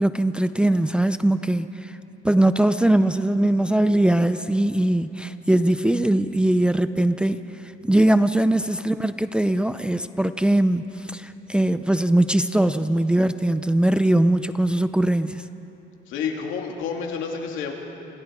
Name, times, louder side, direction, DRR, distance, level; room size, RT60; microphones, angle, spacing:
voice 1, 0.0-1.9 2.2-7.4 7.9-10.8 11.1-15.4, right 1 dB, 5° right, 10 dB, 0.4 m, -21 dB
voice 2, 16.1-17.7, left 6 dB, 85° left, 1 dB, 3.0 m, -29 dB
29.0 x 27.0 x 4.9 m, 3.0 s
cardioid pair, 160°, 20 cm